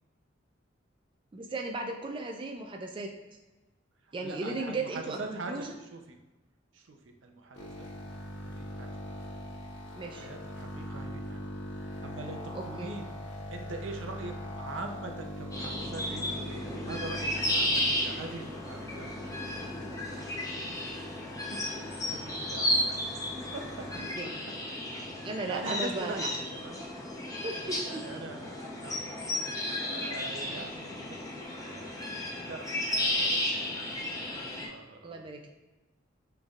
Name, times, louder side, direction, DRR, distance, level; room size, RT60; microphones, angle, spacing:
voice 1, 1.3-3.1 4.1-5.7 10.0-10.3 12.5-12.9 23.9-24.3 25.2-26.2 27.2-28.0 30.6-30.7 35.0-35.5, right 2 dB, 25° right, 2 dB, 0.4 m, -36 dB
voice 2, 4.0-6.2 6.7-7.9 8.4-8.9 10.0-11.4 11.8-13.1 13.5-19.1 20.1-20.8 22.1-23.2 23.5-23.6 24.7-24.8 25.5-26.8 27.8-29.0 29.9-32.2 32.4-33.7 34.5-35.2, right 3 dB, 70° right, 4 dB, 0.6 m, -43 dB
sound 1, 7.5-24.0, equal, 65° left, 0.8 m, -42 dB
sound 2, 15.5-34.7, left 1 dB, 20° left, 0.7 m, -33 dB
6.3 x 3.3 x 2.4 m, 1.2 s
head